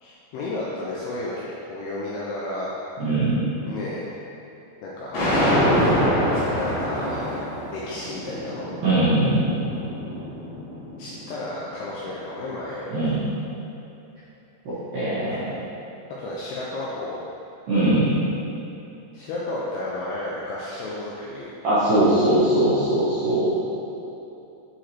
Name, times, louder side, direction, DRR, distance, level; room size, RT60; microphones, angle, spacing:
voice 1, 0.0-2.7 3.7-4.1 4.8-8.7 11.0-13.0 15.3-15.4 16.2-17.2 19.1-21.5, left 2 dB, 90° left, -6 dB, 2.4 m, -33 dB
voice 2, 3.0-3.5 8.8-9.6 12.9-13.2 14.7-15.5 17.7-18.2 21.6-23.5, right 1 dB, 70° right, -13 dB, 2.2 m, -21 dB
sound 1, 5.1-11.3, equal, 60° left, 1.7 m, -25 dB
7.1 x 4.9 x 2.9 m, 3.0 s
omnidirectional pair, 5.3 m